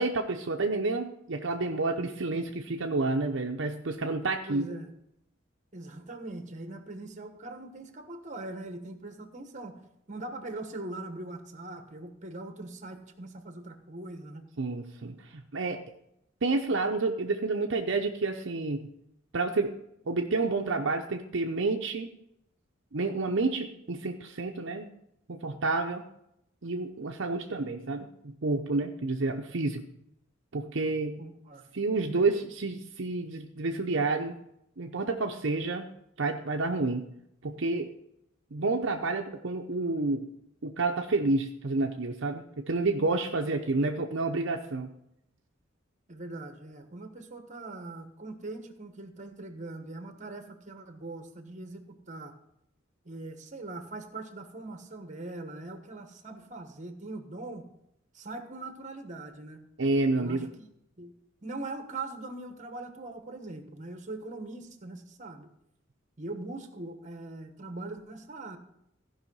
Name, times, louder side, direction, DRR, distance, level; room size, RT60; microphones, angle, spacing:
voice 1, 0.0-4.7 14.6-15.8 16.4-18.9 19.3-19.7 20.1-22.1 22.9-24.9 25.3-26.0 26.6-29.9 30.5-31.3 31.7-34.4 34.8-35.9 36.2-37.0 37.4-37.9 38.5-40.3 40.6-44.9 59.8-60.5, right 3 dB, 65° right, 3 dB, 0.7 m, -29 dB
voice 2, 4.5-4.9 5.7-9.8 10.1-14.4 31.2-31.7 46.1-52.3 53.0-57.7 58.1-59.6 60.1-61.1 61.4-65.5 66.2-68.6, right 2 dB, 40° right, 7 dB, 1.2 m, -41 dB
15.0 x 5.5 x 5.5 m, 0.78 s
head